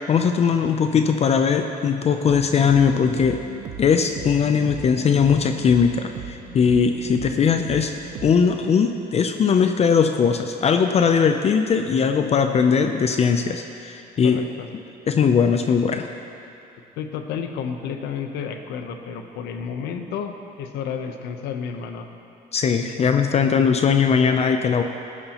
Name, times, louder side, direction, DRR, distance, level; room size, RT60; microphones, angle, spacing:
voice 1, 0.0-3.4 3.8-7.9 8.2-14.4 15.1-16.1 22.5-24.8, left 6 dB, 40° left, 6 dB, 0.5 m, -19 dB
sound 1, 2.3-8.4, right 9 dB, 75° right, 0.9 m, -37 dB
voice 2, 14.2-14.7 17.0-20.3 20.6-22.1, left 7 dB, 85° left, 6 dB, 0.9 m, -31 dB
15.0 x 11.0 x 3.0 m, 2.7 s
cardioid pair, 110°, 17 cm